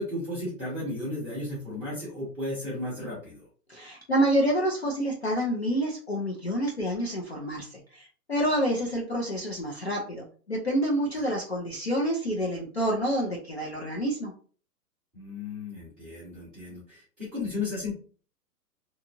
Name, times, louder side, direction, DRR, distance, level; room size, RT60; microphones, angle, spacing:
voice 1, 0.0-3.5 11.3-11.4 15.1-17.9, left 2 dB, 5° right, -10 dB, 0.6 m, -34 dB
voice 2, 3.7-14.3, right 1 dB, 45° left, -2 dB, 0.4 m, -28 dB
2.8 x 2.3 x 2.5 m, 0.40 s
hypercardioid pair, 170°, 50 cm